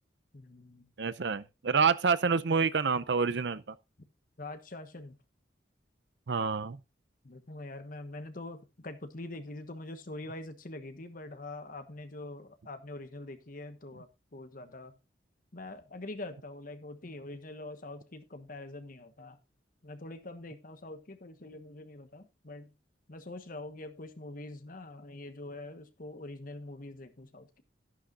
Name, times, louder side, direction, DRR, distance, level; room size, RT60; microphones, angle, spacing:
voice 1, 0.3-0.9 4.4-5.1 7.2-15.0 15.5-19.4 19.8-22.7 23.1-27.6, left 2 dB, 50° left, 1.3 m, -44 dB
voice 2, 1.0-3.8 6.3-6.8, right 5 dB, 65° right, 0.6 m, -28 dB
11.5 x 11.5 x 2.5 m
head